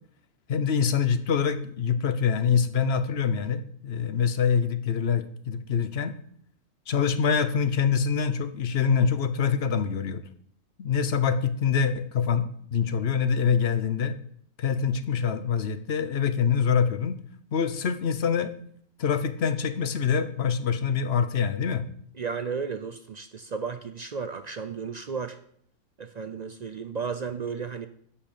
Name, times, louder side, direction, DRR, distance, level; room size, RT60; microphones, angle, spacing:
voice 1, 0.5-6.2 6.9-10.2 10.8-14.2 14.6-17.2 17.5-18.5 19.0-21.8, left 6 dB, 50° left, 12 dB, 1.0 m, -25 dB
voice 2, 22.2-25.4 26.0-27.9, right 5 dB, 60° right, 10 dB, 0.4 m, -34 dB
11.0 x 6.0 x 6.8 m, 0.65 s
omnidirectional pair, 1.5 m